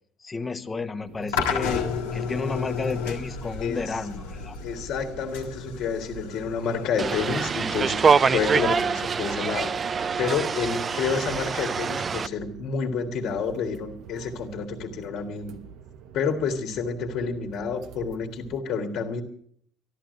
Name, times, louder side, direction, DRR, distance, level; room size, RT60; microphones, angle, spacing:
voice 1, 0.2-4.6, left 4 dB, 25° left, 9 dB, 1.3 m, -32 dB
sound 1, 0.9-18.6, right 8 dB, 70° right, 1.0 m, -45 dB
sound 2, 1.3-8.4, left 6 dB, 85° left, 1.8 m, -32 dB
voice 2, 4.6-8.0 8.3-9.7 10.2-15.6 16.1-19.2, left 5 dB, 65° left, 4 dB, 2.0 m, -29 dB
sound 3, 7.0-12.3, right 5 dB, 35° right, 0.5 m, -25 dB
13.5 x 11.5 x 7.8 m, 0.62 s
hypercardioid pair, 70°, 0 cm